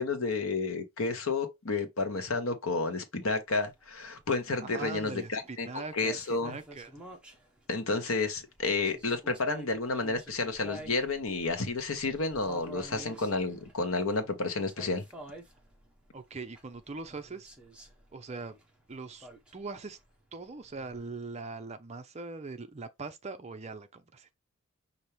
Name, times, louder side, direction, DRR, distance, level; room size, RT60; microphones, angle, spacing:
voice 1, 0.0-6.6 7.7-15.0, left 3 dB, 65° left, 1.0 m, -31 dB
sound 1, 3.5-21.0, right 1 dB, 5° right, 0.9 m, -50 dB
voice 2, 4.6-6.9 16.1-17.5 18.1-18.5 18.9-20.0 20.3-24.3, right 3 dB, 30° right, 0.5 m, -41 dB
5.7 x 2.7 x 3.2 m
head